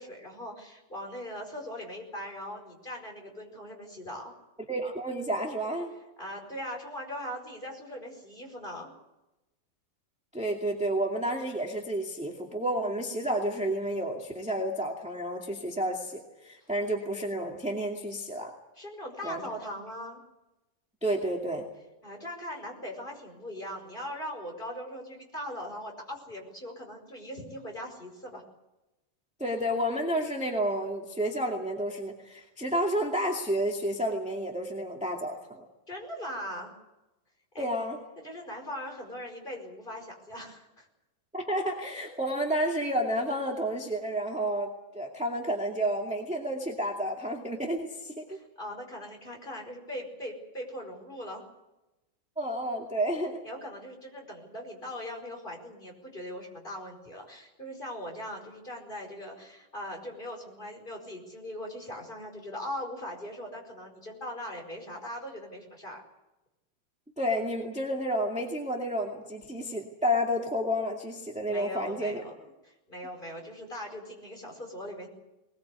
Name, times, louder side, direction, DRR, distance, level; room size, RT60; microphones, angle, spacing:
voice 1, 0.0-4.3 6.2-8.9 18.8-20.2 22.0-28.4 35.9-36.7 37.5-37.8 38.2-40.9 48.3-51.4 53.4-66.0 71.5-75.1, equal, 15° left, 1 dB, 5.0 m, -40 dB
voice 2, 4.7-5.9 10.3-18.5 19.2-19.5 21.0-21.6 29.4-35.7 37.6-38.0 41.3-48.4 52.3-53.4 67.2-72.2, equal, 5° right, -1 dB, 1.6 m, -30 dB
21.0 x 20.5 x 8.3 m, 0.98 s
omnidirectional pair, 3.8 m